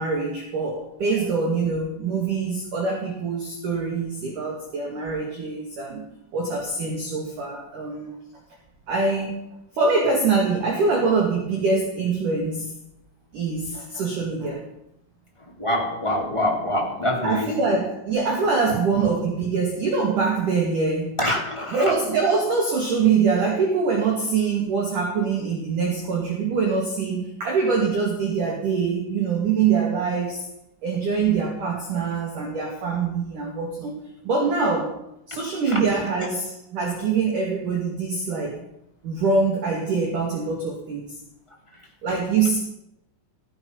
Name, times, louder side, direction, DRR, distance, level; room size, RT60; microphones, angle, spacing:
voice 1, 0.0-8.1 8.9-9.5 9.7-12.7 13.3-14.7 17.2-21.2 21.7-30.5 30.8-33.9 34.2-35.0 35.3-38.6 39.0-41.2 42.0-42.6, right 4 dB, 45° right, 1 dB, 3.3 m, -24 dB
voice 2, 15.4-17.6 18.7-18.8 21.2-21.9 35.6-35.8 41.7-41.8, left 1 dB, 5° left, -2 dB, 3.1 m, -25 dB
16.0 x 16.0 x 5.6 m, 0.82 s
omnidirectional pair, 5.9 m